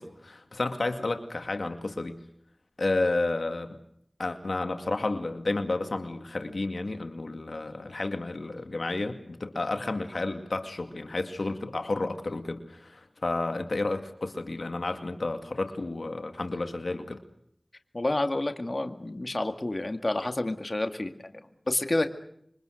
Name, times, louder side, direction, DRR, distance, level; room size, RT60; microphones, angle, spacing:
voice 1, 0.0-2.1 2.8-3.8 4.2-17.2, left 2 dB, 85° left, 7 dB, 2.3 m, -31 dB
voice 2, 17.9-21.4 21.7-22.1, left 2 dB, 50° left, 6 dB, 2.2 m, -29 dB
27.5 x 23.5 x 6.5 m, 0.70 s
wide cardioid pair, 40°, 0 cm